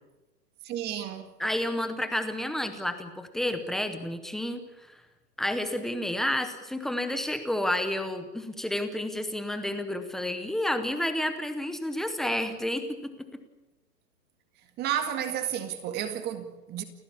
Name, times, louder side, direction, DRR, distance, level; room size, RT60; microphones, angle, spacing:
voice 1, 0.6-1.3 14.8-16.8, right 10 dB, 20° right, 1.9 m, -32 dB
voice 2, 1.4-5.0 5.4-13.4, left 1 dB, ahead, 0.7 m, -30 dB
29.0 x 15.0 x 8.6 m
hypercardioid pair, 155°, 50 cm